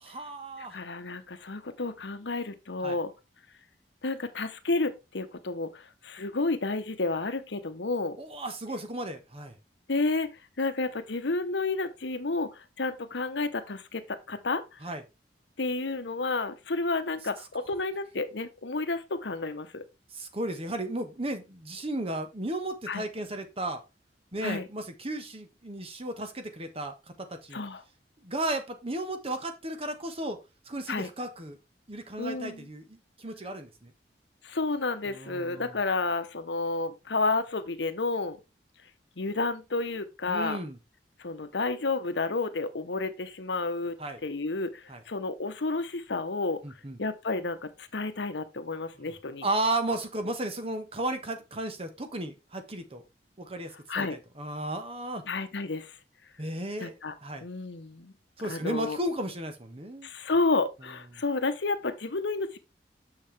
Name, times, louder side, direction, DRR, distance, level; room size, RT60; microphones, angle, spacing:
voice 1, 0.0-0.8 2.8-3.0 8.2-9.5 14.8-15.0 20.1-23.8 24.3-27.6 28.2-30.4 30.7-31.6 31.9-33.9 35.1-35.7 40.3-40.8 44.0-44.2 44.9-45.0 46.6-47.0 49.4-53.0 53.4-55.2 56.4-56.9 57.2-57.4 58.4-60.1, right 1 dB, 35° right, 1.3 m, -34 dB
voice 2, 0.6-3.1 4.0-8.2 9.9-14.6 15.6-19.8 22.9-23.0 24.4-24.7 27.5-27.8 30.9-31.1 32.2-32.7 34.4-38.4 39.2-40.6 41.2-46.6 47.0-49.4 53.9-54.2 55.2-55.9 56.8-57.1 57.4-58.1 58.4-59.0 60.0-62.6, left 3 dB, 90° left, 1.0 m, -31 dB
6.9 x 6.6 x 3.4 m
head